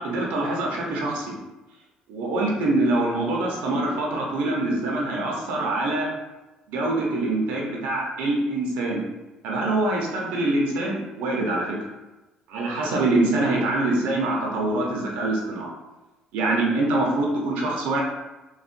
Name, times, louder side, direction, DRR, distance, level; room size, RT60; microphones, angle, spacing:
voice 1, 0.0-1.3 2.1-6.1 6.7-9.0 9.4-11.8 12.5-15.7 16.3-18.0, right 2 dB, 85° right, -2 dB, 0.8 m, -24 dB
4.0 x 2.3 x 2.5 m, 1.1 s
cardioid pair, 110°, 3 cm